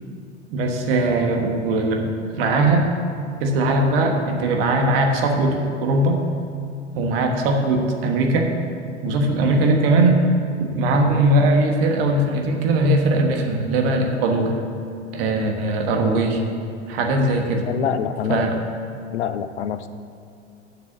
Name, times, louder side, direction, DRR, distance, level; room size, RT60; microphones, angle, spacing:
voice 1, 0.5-2.1 2.4-2.9 3.4-6.2 6.9-8.5 9.0-10.2 10.6-14.6 15.1-16.4 16.9-17.7 18.3-18.5, right 2 dB, 55° right, 3 dB, 1.4 m, -20 dB
voice 2, 17.7-18.6 19.1-19.9, left 8 dB, 75° left, 12 dB, 0.6 m, -25 dB
7.0 x 6.8 x 7.9 m, 2.6 s
figure-of-eight pair, 75°, 35 cm